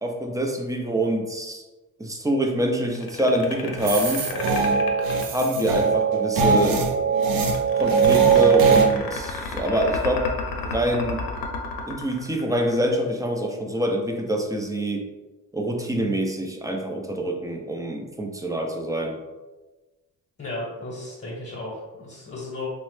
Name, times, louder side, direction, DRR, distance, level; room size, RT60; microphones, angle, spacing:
voice 1, 0.0-1.6 2.0-4.2 5.2-6.9 7.7-10.3 10.6-11.2 11.9-15.1 15.5-19.1, equal, 10° right, 2 dB, 0.4 m, -25 dB
sound 1, 2.9-6.0 7.5-13.0, left 4 dB, 85° left, 0.6 m, -32 dB
sound 2, 3.8-8.9, right 6 dB, 80° right, 0.6 m, -20 dB
voice 2, 20.4-22.7, left 2 dB, 30° left, -4 dB, 0.9 m, -35 dB
2.9 x 2.1 x 3.1 m, 1.2 s
cardioid pair, 85°, 35 cm